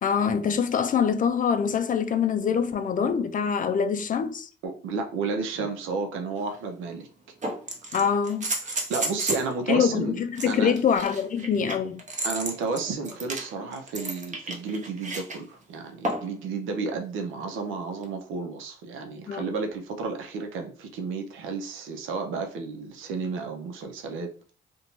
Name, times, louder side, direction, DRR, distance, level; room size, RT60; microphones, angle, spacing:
voice 1, 0.0-4.5 7.9-8.5 9.7-12.0 19.3-19.5, left 7 dB, 45° left, 0.4 m, -24 dB
voice 2, 4.6-7.1 8.6-10.7 12.2-24.3, right 4 dB, 85° right, 0.6 m, -32 dB
sound 1, 6.4-6.5 7.4-9.5 10.4-15.4 16.0-16.4 18.0-18.1, right 2 dB, 40° right, 0.8 m, -32 dB
2.6 x 2.2 x 3.0 m
cardioid pair, 90°, 20 cm